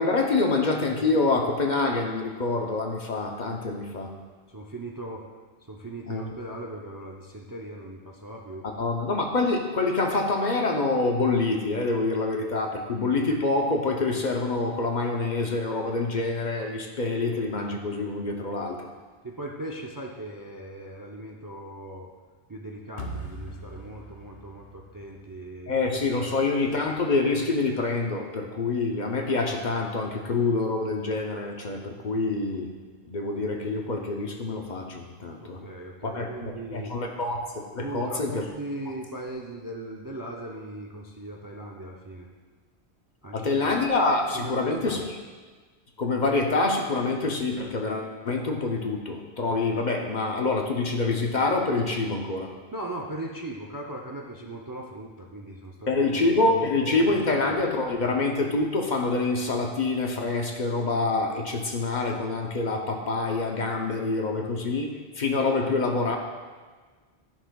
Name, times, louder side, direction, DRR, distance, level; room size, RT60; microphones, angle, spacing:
voice 1, 0.0-4.1 6.1-6.3 8.8-18.8 25.7-32.7 33.1-35.6 36.0-36.3 36.7-38.4 43.3-45.2 46.0-52.5 55.9-66.2, left 3 dB, 50° left, 2 dB, 0.8 m, -26 dB
voice 2, 4.5-5.3 5.6-8.6 19.2-22.1 22.5-25.7 26.2-26.4 35.4-36.9 37.8-42.3 43.2-43.7 44.3-45.0 52.7-56.3 56.8-57.4, right 1 dB, 25° right, 0 dB, 0.4 m, -39 dB
sound 1, 23.0-26.1, right 1 dB, 80° left, 1.2 m, -41 dB
13.0 x 5.7 x 2.3 m, 1.5 s
omnidirectional pair, 1.1 m